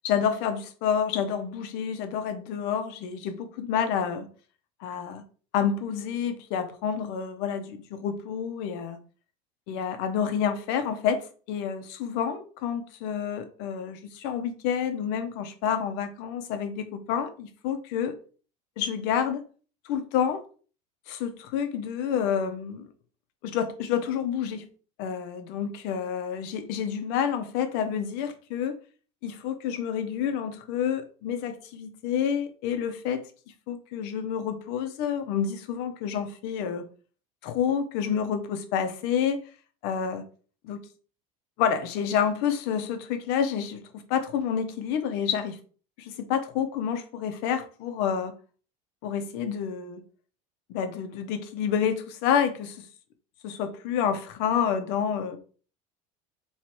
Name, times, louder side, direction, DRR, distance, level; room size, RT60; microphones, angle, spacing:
voice 1, 0.0-4.3 4.8-5.2 5.5-9.0 9.7-18.2 18.8-19.4 19.8-20.4 21.1-22.9 23.4-24.7 25.0-28.8 29.2-33.3 33.7-36.8 37.4-39.4 39.8-40.2 40.6-40.8 41.6-43.8 44.1-45.6 46.0-48.3 49.0-50.0 50.7-52.8 53.4-55.4, left 8 dB, 70° left, 0.9 m, -29 dB
3.2 x 3.1 x 4.5 m
supercardioid pair, 120°, 18 cm